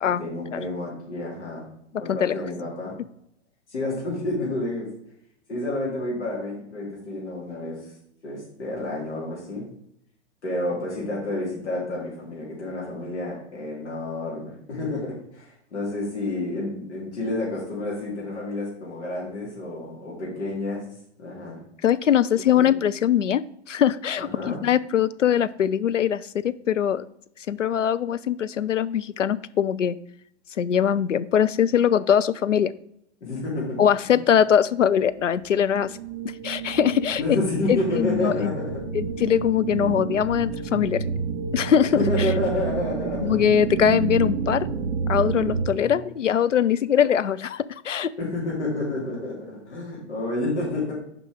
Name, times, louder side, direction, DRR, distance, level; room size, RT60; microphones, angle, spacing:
voice 1, 0.2-1.7 2.0-2.9 3.7-4.9 5.5-7.9 8.2-9.7 10.4-20.8 21.2-21.6 22.3-22.7 24.2-24.6 33.2-33.8 34.1-34.2 37.2-38.8 41.9-43.5 43.7-44.0 45.7-46.0 48.2-50.9, left 2 dB, 65° left, -5 dB, 3.3 m, -30 dB
voice 2, 1.9-2.4 21.8-23.4 23.7-24.3 24.6-27.0 27.5-30.0 30.6-32.7 33.8-35.9 36.4-38.5 38.9-41.0 41.5-42.3 43.2-44.7 45.1-48.1, left 9 dB, 85° left, 15 dB, 0.5 m, -22 dB
sound 1, 35.0-35.1 35.3-45.6, right 6 dB, 35° right, 2.6 m, -29 dB
6.6 x 5.2 x 5.0 m, 0.73 s
figure-of-eight pair, 115°, 36 cm